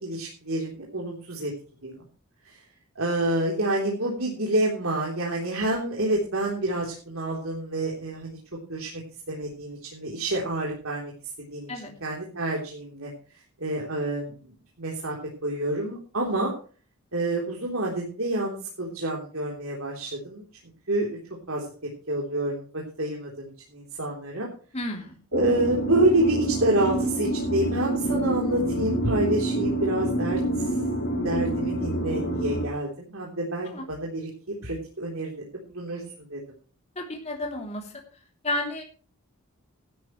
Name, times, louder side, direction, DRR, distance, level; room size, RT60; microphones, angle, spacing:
voice 1, 0.0-1.5 1.8-2.1 2.5-2.6 3.0-8.4 8.7-9.0 9.3-11.1 11.4-11.7 12.0-13.1 13.6-15.2 15.4-16.5 17.1-20.4 20.9-21.2 21.5-21.7 22.1-24.5 25.3-30.7 31.2-36.4, right 1 dB, 70° right, -2 dB, 3.6 m, -28 dB
voice 2, 24.7-25.2 33.7-33.9 36.9-37.9 38.4-38.8, left 1 dB, 30° left, 1 dB, 3.1 m, -31 dB
sound 1, 25.3-32.7, right 1 dB, 45° left, 4.7 m, -27 dB
17.0 x 12.5 x 3.2 m, 0.39 s
head